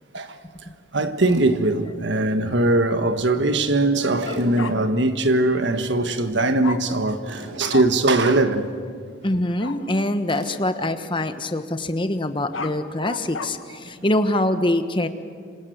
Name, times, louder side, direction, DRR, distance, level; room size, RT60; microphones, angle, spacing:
voice 1, 0.9-8.7 13.8-13.9, right 2 dB, 60° right, 1.5 m, -21 dB
Tools, 1.2-1.5 4.2-4.5 7.3-7.5 10.3-10.6, right 2 dB, 85° right, 5.1 m, -40 dB
Bark, 4.6-4.7 6.6-6.8 7.7-7.9 8.2-8.4 9.6-9.8 12.3-13.5, left 4 dB, 85° left, 1.4 m, -31 dB
voice 2, 9.2-15.1, left 1 dB, 25° left, 1.2 m, -24 dB
26.5 x 26.0 x 8.1 m
head